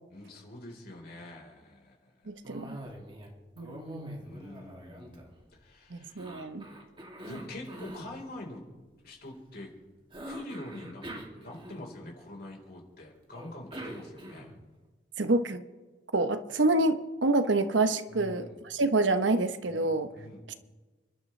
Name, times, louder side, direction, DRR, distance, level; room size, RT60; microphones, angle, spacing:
voice 1, 0.1-2.3 4.2-6.3 7.2-8.6 9.0-9.7 10.2-11.1 11.3-14.5 18.1-18.6 19.7-20.4, left 1 dB, 55° left, -1 dB, 4.2 m, -45 dB
voice 2, 2.3-2.8 3.6-4.2 5.9-6.7 15.2-15.6 16.1-20.1, right 2 dB, 85° right, 9 dB, 1.0 m, -27 dB
Cough, 2.4-3.3 3.6-5.6 6.2-8.1 10.1-12.1 13.3-14.7, right 1 dB, 30° right, 2.5 m, -44 dB
30.0 x 12.0 x 3.3 m, 1.3 s
head